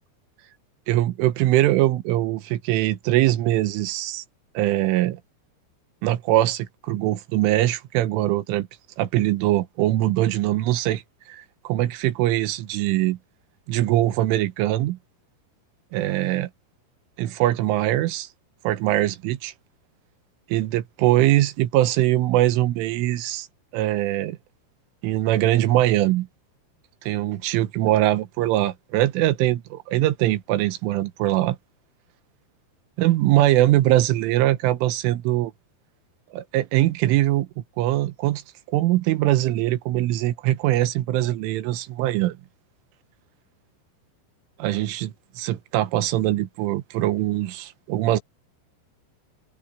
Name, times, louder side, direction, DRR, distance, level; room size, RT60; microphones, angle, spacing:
voice 1, 0.9-4.2 4.6-5.2 6.0-8.7 9.0-11.0 11.3-13.2 13.7-15.0 15.9-16.5 17.2-18.3 18.7-19.5 20.5-23.5 23.7-24.4 25.0-26.3 27.0-31.6 33.0-35.5 36.3-38.4 38.7-42.4 44.6-48.2, right 15 dB, 85° right, 3.6 m, -22 dB
open air
omnidirectional pair, 5.5 m